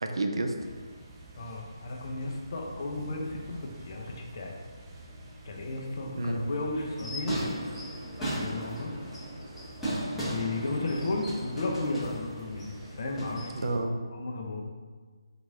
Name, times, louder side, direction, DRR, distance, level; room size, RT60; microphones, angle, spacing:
voice 1, 0.0-0.5 6.1-6.5 13.5-14.0, right 2 dB, 70° right, 5 dB, 0.5 m, -29 dB
sound 1, 0.6-13.8, right 1 dB, 25° right, 0.6 m, -49 dB
voice 2, 1.4-4.5 5.4-7.4 8.4-8.9 10.1-13.7 14.1-14.6, left 2 dB, 50° left, 1 dB, 0.7 m, -34 dB
sound 2, 6.9-13.6, right 1 dB, 5° left, 1.4 m, -36 dB
3.9 x 3.1 x 3.6 m, 1.5 s
figure-of-eight pair, 150°, 3 cm